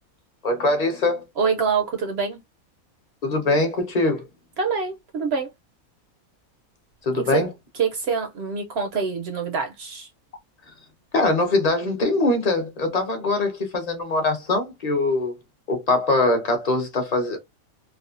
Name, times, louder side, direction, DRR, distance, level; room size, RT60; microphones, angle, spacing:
voice 1, 0.4-1.3 3.2-4.2 7.0-7.5 11.1-15.3 15.7-17.4, left 2 dB, 35° left, 0.7 m, -22 dB
voice 2, 1.4-2.4 4.6-5.5 7.3-7.4 7.8-10.1, right 5 dB, 65° right, 0.6 m, -25 dB
3.3 x 2.0 x 2.4 m
omnidirectional pair, 1.5 m